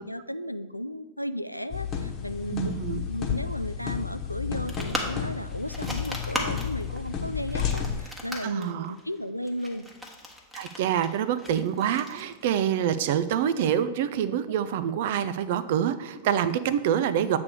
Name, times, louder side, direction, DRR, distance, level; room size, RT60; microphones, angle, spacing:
voice 1, 0.0-9.9, equal, 90° left, 12 dB, 0.3 m, -35 dB
sound 1, 1.7-8.0, left 7 dB, 35° left, 1.2 m, -32 dB
voice 2, 2.5-3.0 8.4-9.0 10.5-17.4, right 9 dB, 50° right, 13 dB, 0.5 m, -26 dB
sound 2, 4.7-12.9, left 1 dB, 5° right, 1.3 m, -38 dB
8.1 x 3.4 x 6.6 m, 1.2 s
figure-of-eight pair, 90°, 0 cm